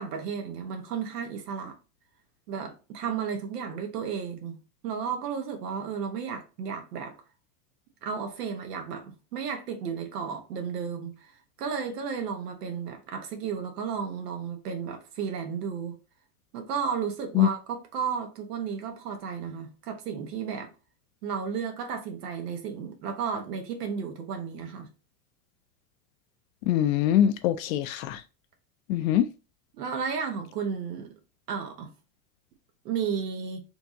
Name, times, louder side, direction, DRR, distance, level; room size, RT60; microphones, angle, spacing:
voice 1, 0.0-1.7 2.5-4.6 4.8-7.1 8.0-11.3 11.6-16.0 16.5-20.7 21.2-24.9 29.7-31.1 31.5-31.9 32.8-33.6, right 6 dB, 80° right, 1.2 m, -33 dB
voice 2, 26.7-28.2 28.9-29.3, left 11 dB, 60° left, 0.5 m, -23 dB
4.4 x 2.8 x 2.7 m
supercardioid pair, 130°, 47 cm